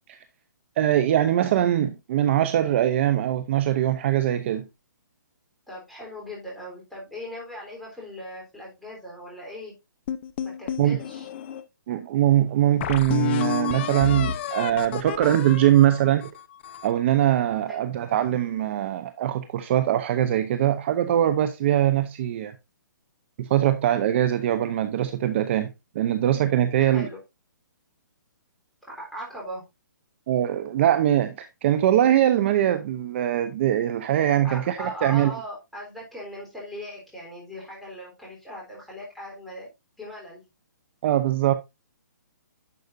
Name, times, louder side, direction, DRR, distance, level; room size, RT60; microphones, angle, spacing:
voice 1, 0.8-4.7 10.8-11.0 11.9-16.3 16.8-22.5 23.4-25.7 25.9-27.1 30.3-35.3 41.0-41.5, right 12 dB, 35° right, 0.7 m, -22 dB
voice 2, 5.7-9.7 10.6-11.3 17.7-17.9 26.8-27.2 28.9-29.6 34.4-39.7 40.0-40.4, equal, ahead, 3.7 m, -39 dB
sound 1, 10.1-11.6 12.2-12.3 12.8-17.0, left 10 dB, 35° left, 0.7 m, -30 dB
11.0 x 6.4 x 2.6 m
hypercardioid pair, 160°, 10 cm